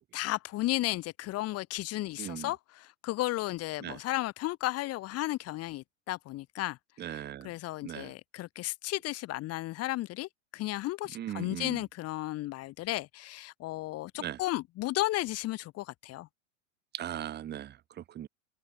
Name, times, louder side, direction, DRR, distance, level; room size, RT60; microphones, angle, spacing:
voice 1, 0.1-6.8 7.0-16.3, left 17 dB, 40° left, 1.3 m, -34 dB
voice 2, 2.2-2.5 3.8-4.0 7.0-7.5 7.8-8.1 11.1-11.8 14.2-14.4 16.9-18.3, right 11 dB, 25° right, 0.9 m, -39 dB
open air
hypercardioid pair, 95°, 38 cm